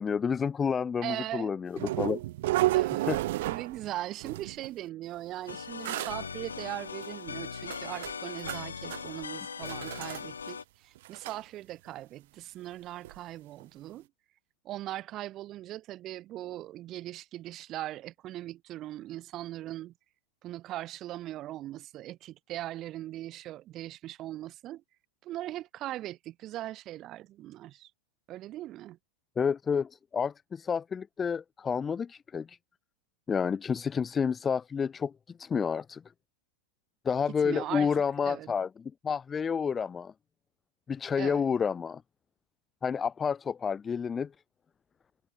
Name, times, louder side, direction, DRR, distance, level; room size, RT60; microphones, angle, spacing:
voice 1, 0.0-2.2 3.0-3.2 29.4-32.6 33.3-35.1 35.4-36.0 37.0-40.1 40.9-42.0 42.8-44.3, left 6 dB, 20° left, 0.6 m, -30 dB
voice 2, 1.0-1.5 2.7-14.1 14.6-19.9 20.4-24.8 25.2-27.9 28.3-29.0 37.4-37.9 38.2-38.5 41.2-41.4, right 14 dB, 35° right, 1.3 m, -40 dB
sound 1, 1.8-3.9 4.2-4.7 5.5-5.6 5.8-6.2 7.0-7.1 7.6-8.6 8.9-9.2 9.6-10.2 10.5-10.6 11.0-11.4 13.0-13.2 13.6-13.7, right 17 dB, 55° right, 1.3 m, -31 dB
sound 2, 5.5-10.6, left 6 dB, 70° left, 4.3 m, -40 dB
figure-of-eight pair, 90°, 0 cm